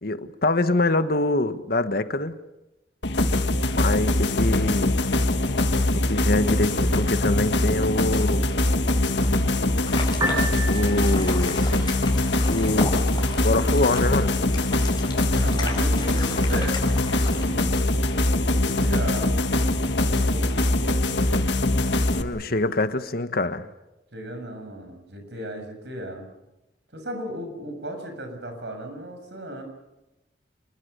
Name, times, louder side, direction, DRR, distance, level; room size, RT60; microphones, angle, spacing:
voice 1, 0.0-2.4 3.7-5.0 5.9-8.5 10.7-11.6 12.5-13.0 13.4-14.4 21.7-23.7, left 2 dB, 60° left, 1.4 m, -25 dB
sound 1, 3.0-22.2, left 1 dB, 80° left, 1.8 m, -22 dB
sound 2, 9.8-17.4, left 3 dB, 25° left, 5.3 m, -36 dB
Piano, 10.1-23.1, right 1 dB, 20° right, 6.5 m, -39 dB
voice 2, 15.3-17.9 18.5-19.3 20.0-20.6 24.1-26.3 26.9-29.6, right 1 dB, 75° right, 7.1 m, -36 dB
27.0 x 22.0 x 6.9 m
head